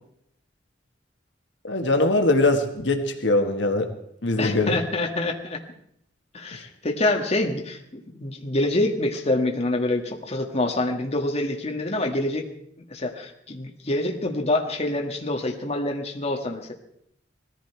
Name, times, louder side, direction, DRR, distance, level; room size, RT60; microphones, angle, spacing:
voice 1, 1.6-3.9 4.2-4.8, left 2 dB, 70° left, 5 dB, 1.5 m, -22 dB
voice 2, 4.4-5.6 6.3-12.4 12.9-16.7, left 2 dB, 35° left, 2 dB, 1.6 m, -26 dB
19.5 x 14.5 x 4.5 m, 0.75 s
head